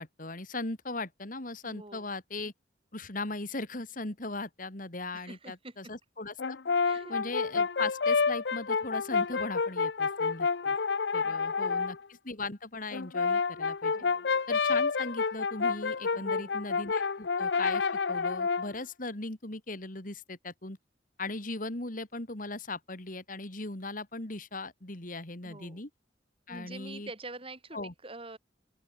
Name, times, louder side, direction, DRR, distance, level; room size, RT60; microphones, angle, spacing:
voice 1, 0.0-2.5 2.9-6.6 7.1-10.8 11.1-13.9 14.5-20.8 21.2-25.9 26.5-27.1 27.7-27.9, left 2 dB, 45° left, 2.7 m, -38 dB
voice 2, 1.6-2.1 5.1-5.8 6.8-7.2 11.2-11.7 13.9-14.3 16.1-16.6 25.4-25.8 26.5-28.4, right 2 dB, 30° right, 5.2 m, -46 dB
Brass instrument, 6.4-12.0 12.9-18.8, left 5 dB, 65° left, 0.7 m, -29 dB
open air
head